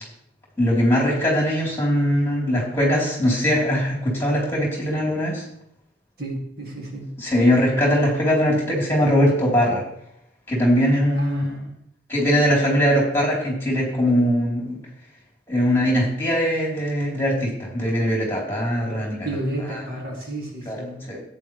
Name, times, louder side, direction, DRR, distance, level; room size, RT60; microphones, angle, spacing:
voice 1, 0.6-5.4 7.2-9.8 10.5-11.5 12.1-14.8 15.5-19.3 19.7-19.8 20.7-21.2, equal, 10° left, -3 dB, 3.7 m, -21 dB
voice 2, 6.2-7.1 11.1-11.7 19.2-21.0, right 1 dB, 50° right, -2 dB, 2.5 m, -32 dB
14.0 x 9.3 x 3.3 m, 0.75 s
head